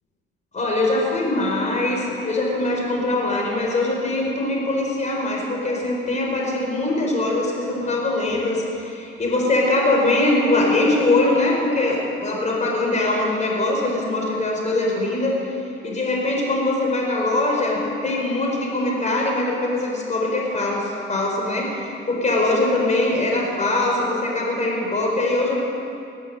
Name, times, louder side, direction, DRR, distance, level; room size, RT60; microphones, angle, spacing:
voice 1, 0.5-15.4 15.8-25.6, left 2 dB, 35° left, -2 dB, 4.8 m, -22 dB
21.5 x 8.3 x 8.0 m, 2.7 s
cardioid pair, 90°, 20 cm